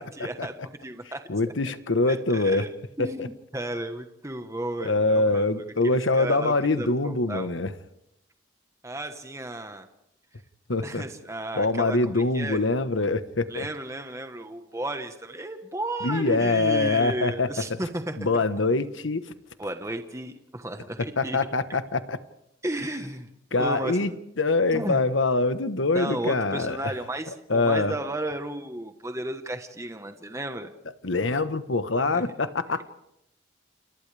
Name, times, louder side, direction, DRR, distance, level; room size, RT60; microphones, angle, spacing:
voice 1, 0.1-1.2 2.1-2.7 3.0-7.5 8.8-9.9 10.8-12.6 13.5-18.4 19.6-21.4 22.6-23.3 23.6-24.2 24.7-25.0 25.9-30.7 32.0-32.2, right 1 dB, 15° right, 7 dB, 1.3 m, -34 dB
voice 2, 1.3-2.6 3.0-3.3 4.8-7.7 10.7-11.0 11.5-13.7 16.0-17.5 18.2-19.3 21.2-22.2 23.5-24.1 24.4-26.9 27.5-28.0 31.0-32.8, left 3 dB, 85° left, 11 dB, 1.3 m, -24 dB
29.5 x 28.5 x 3.5 m, 0.79 s
head